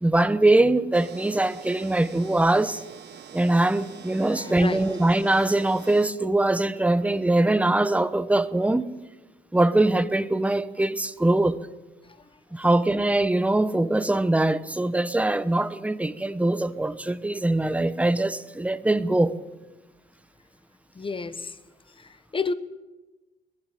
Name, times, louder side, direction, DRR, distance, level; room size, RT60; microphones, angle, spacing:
voice 1, 0.0-2.8 3.3-8.9 9.5-11.6 12.5-19.3, right 2 dB, 5° right, 1.0 m, -22 dB
sound 1, 0.9-6.1, right 8 dB, 60° right, 1.4 m, -45 dB
voice 2, 4.3-5.0 20.9-21.6 22.0-22.5, left 4 dB, 25° left, 1.2 m, -31 dB
20.5 x 15.5 x 8.6 m
cardioid pair, 90°, 20 cm